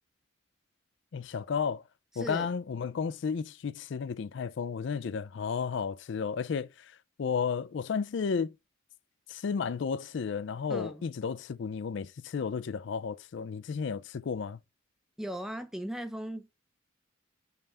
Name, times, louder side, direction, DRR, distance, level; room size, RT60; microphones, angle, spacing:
voice 1, 1.1-1.8 2.2-6.7 7.2-8.5 9.3-14.6, left 6 dB, 55° left, 0.4 m, -33 dB
voice 2, 2.1-2.5 10.7-11.1 15.2-16.6, equal, ahead, 0.6 m, -38 dB
5.5 x 3.4 x 5.4 m
head